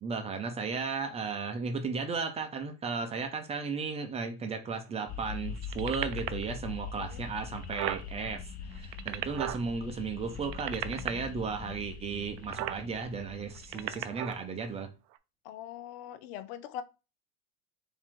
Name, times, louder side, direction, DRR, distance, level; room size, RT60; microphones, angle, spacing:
voice 1, 0.0-14.9, right 5 dB, 20° right, 0.7 m, -35 dB
sound 1, 5.1-14.3, left 6 dB, 25° left, 0.4 m, -42 dB
sound 2, 5.6-6.4 7.1-7.2 7.4-8.0 8.7-9.6 10.4-11.1 12.4-12.8 13.5-14.4 15.1-15.2, right 15 dB, 55° right, 0.5 m, -35 dB
voice 2, 13.7-14.3 15.4-16.8, left 10 dB, 70° left, 0.7 m, -43 dB
4.6 x 2.8 x 3.6 m
supercardioid pair, 135°, 32 cm